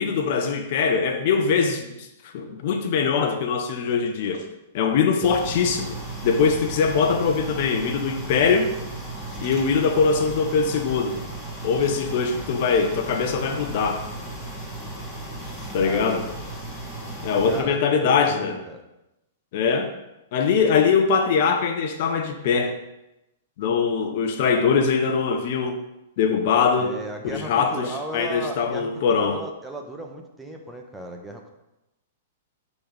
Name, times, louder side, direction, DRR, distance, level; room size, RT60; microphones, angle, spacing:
voice 1, 0.0-2.1 2.3-4.5 4.7-8.7 9.4-11.2 11.6-14.0 15.7-16.3 17.2-18.6 19.5-19.9 20.3-22.8 23.6-25.8 26.2-26.9 27.2-29.4, left 5 dB, 55° left, 6 dB, 0.8 m, -22 dB
sound 1, 5.2-17.6, right 2 dB, 10° left, 1.9 m, -35 dB
voice 2, 15.8-16.2 17.5-18.8 26.8-31.6, right 1 dB, 5° right, 2 dB, 1.0 m, -36 dB
6.6 x 4.1 x 5.2 m, 0.93 s
hypercardioid pair, 110°, 0 cm